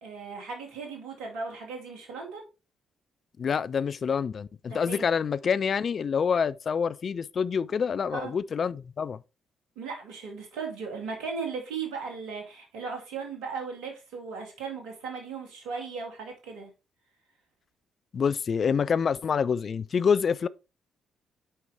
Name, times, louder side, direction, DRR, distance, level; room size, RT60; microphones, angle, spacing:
voice 1, 0.0-2.5 4.7-5.1 8.1-8.3 9.8-16.7, right 5 dB, 70° right, 2.1 m, -37 dB
voice 2, 3.4-9.2 18.1-20.5, left 6 dB, 50° left, 0.3 m, -27 dB
8.7 x 4.7 x 3.4 m
figure-of-eight pair, 40°, 0 cm